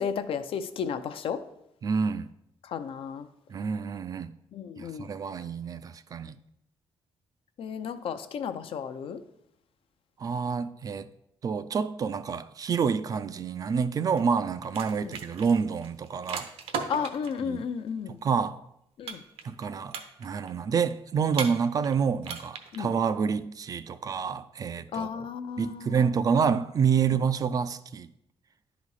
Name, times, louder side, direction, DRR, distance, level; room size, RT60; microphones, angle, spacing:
voice 1, 0.0-1.4 2.6-3.3 4.5-5.1 7.6-9.2 15.0-15.1 16.9-18.2 19.0-19.2 22.7-22.9 24.9-26.0 27.1-27.2, left 7 dB, 65° left, 0.6 m, -33 dB
voice 2, 1.8-2.3 3.5-4.3 4.8-6.4 10.2-11.1 11.4-16.5 17.4-17.6 18.2-18.6 19.4-25.2 25.6-28.1, right 6 dB, 40° right, 0.3 m, -28 dB
sound 1, 14.2-14.4 14.6-17.4 19.1-19.6 19.9-20.5 21.3-21.9 22.2-22.8, right 5 dB, 75° right, 0.8 m, -36 dB
10.5 x 4.1 x 4.8 m
cardioid pair, 145°, 10 cm